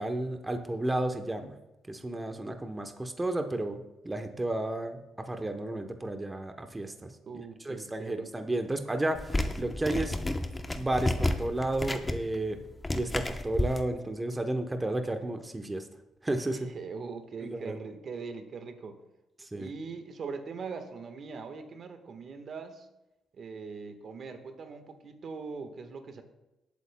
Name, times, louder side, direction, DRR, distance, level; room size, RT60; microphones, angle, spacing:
voice 1, 0.0-1.5 1.9-7.1 7.6-10.2 10.7-12.6 13.0-15.9 16.2-16.7 17.4-17.8 19.4-19.7, right 1 dB, 15° right, 6 dB, 0.9 m, -32 dB
voice 2, 7.2-8.2 16.5-19.0 19.6-22.9 23.4-26.2, right 5 dB, 55° right, 7 dB, 1.4 m, -41 dB
sound 1, 9.1-13.8, left 1 dB, 20° left, 0.9 m, -31 dB
19.0 x 8.5 x 2.3 m, 0.96 s
cardioid pair, 90°, 0 cm